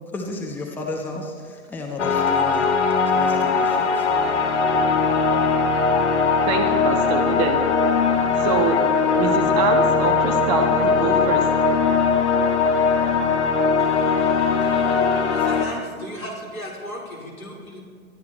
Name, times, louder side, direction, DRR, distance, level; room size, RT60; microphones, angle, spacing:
voice 1, 0.1-2.7 3.1-4.1, left 2 dB, 5° left, 0 dB, 1.2 m, -33 dB
sound 1, 2.0-15.6, left 5 dB, 55° left, 1.9 m, -20 dB
voice 2, 6.5-7.6 8.4-8.8 9.2-11.4, right 4 dB, 30° right, 5 dB, 1.6 m, -24 dB
voice 3, 15.3-17.8, equal, 75° left, -1 dB, 4.4 m, -35 dB
20.0 x 13.0 x 4.3 m, 2.1 s
figure-of-eight pair, 120°, 43 cm